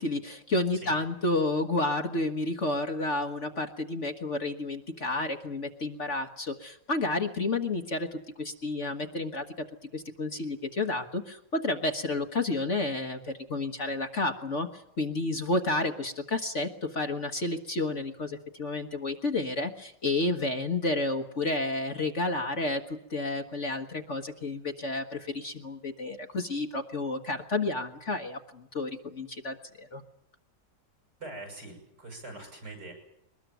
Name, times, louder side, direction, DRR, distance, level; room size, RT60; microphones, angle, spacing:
voice 1, 0.0-9.4 9.9-30.0, left 2 dB, 45° left, 5 dB, 1.6 m, -31 dB
voice 2, 31.2-32.9, right 2 dB, 65° right, 4 dB, 8.5 m, -43 dB
22.5 x 20.5 x 9.2 m, 0.75 s
omnidirectional pair, 2.0 m